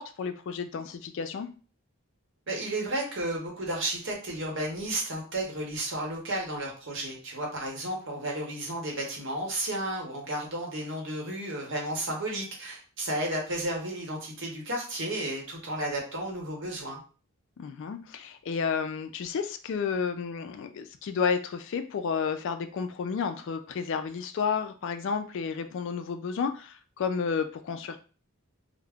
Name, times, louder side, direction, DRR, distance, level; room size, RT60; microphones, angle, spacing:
voice 1, 0.0-1.5 17.6-28.0, left 6 dB, 55° left, 9 dB, 0.3 m, -31 dB
voice 2, 2.5-17.0, right 1 dB, 55° right, -1 dB, 0.9 m, -33 dB
2.3 x 2.0 x 3.4 m, 0.38 s
head